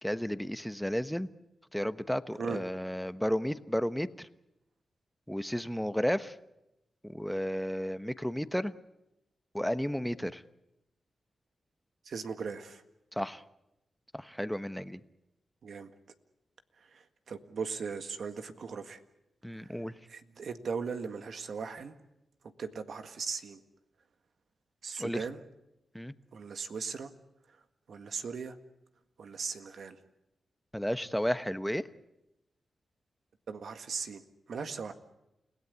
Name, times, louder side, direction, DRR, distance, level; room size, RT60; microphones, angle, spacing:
voice 1, 0.0-1.3 1.7-4.3 5.3-6.3 7.0-8.7 9.5-10.4 13.2-13.4 14.1-15.0 19.4-19.9 25.0-25.2 25.9-26.1 30.7-31.8, equal, 5° left, 12 dB, 1.1 m, -32 dB
voice 2, 12.0-12.8 15.6-15.9 16.8-19.0 19.5-21.9 22.6-23.6 24.8-25.4 26.3-27.1 27.5-27.6 27.9-28.6 29.2-30.0 33.5-34.9, right 5 dB, 75° right, 8 dB, 1.8 m, -38 dB
29.5 x 17.5 x 8.3 m, 0.90 s
cardioid pair, 60°, 0 cm